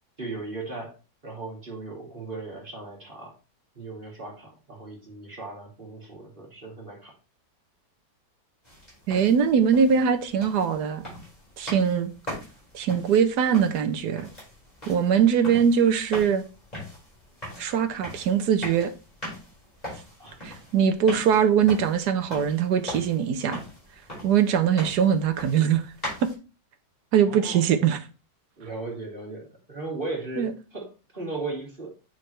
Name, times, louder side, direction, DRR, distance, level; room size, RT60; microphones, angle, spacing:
voice 1, 0.2-0.9 1.2-3.3 3.7-7.1 20.2-20.4 27.3-27.6 28.6-30.9 31.1-31.9, right 3 dB, 30° right, 2.5 m, -37 dB
sound 1, 8.6-26.3, left 1 dB, 20° left, 5.3 m, -41 dB
voice 2, 9.1-11.0 11.6-12.1 12.7-14.3 14.9-16.4 17.6-18.9 20.4-23.6 24.2-25.8 26.2-26.3 27.1-28.0 30.4-30.5, right 7 dB, 70° right, 1.3 m, -22 dB
9.1 x 5.6 x 3.2 m
omnidirectional pair, 1.9 m